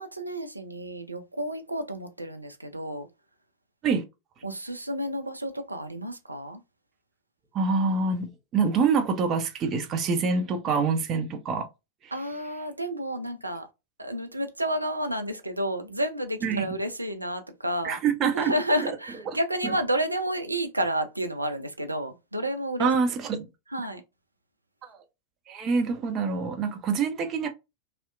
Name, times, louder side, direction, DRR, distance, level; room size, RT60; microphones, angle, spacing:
voice 1, 0.0-3.1 4.4-6.6 12.1-13.7 14.0-18.0 18.3-22.9 23.7-24.0, equal, 85° right, 0.4 m, -30 dB
voice 2, 7.5-11.7 12.0-12.1 16.4-16.7 17.8-18.5 19.3-19.4 19.6-19.7 22.8-23.5 24.8-25.0 25.5-27.5, right 5 dB, 30° right, 0.6 m, -26 dB
2.8 x 2.0 x 2.3 m
figure-of-eight pair, 90°, 0 cm